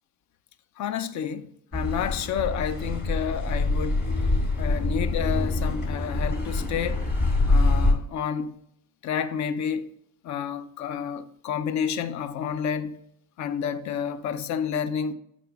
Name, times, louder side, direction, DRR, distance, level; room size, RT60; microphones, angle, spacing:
voice 1, 0.8-4.0 4.6-7.0 7.4-8.6 9.0-9.9 10.2-13.0 13.4-15.1, left 7 dB, 55° left, 0.7 m, -30 dB
Car passing by / Accelerating revving vroom, 1.7-7.9, left 2 dB, 30° left, 2.4 m, -25 dB
7.7 x 5.1 x 3.5 m
cardioid pair, 95°, 33 cm